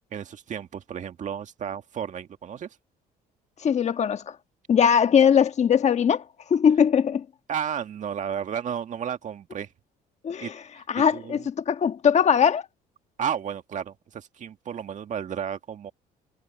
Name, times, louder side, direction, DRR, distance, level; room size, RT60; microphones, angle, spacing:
voice 1, 0.1-2.7 7.5-9.7 10.4-11.5 13.2-15.9, right 8 dB, 45° right, 1.8 m, -33 dB
voice 2, 3.6-4.3 4.7-6.2 6.5-7.2 10.2-10.6 10.9-12.6, left 7 dB, 40° left, 1.4 m, -20 dB
cardioid pair, 110°, 17 cm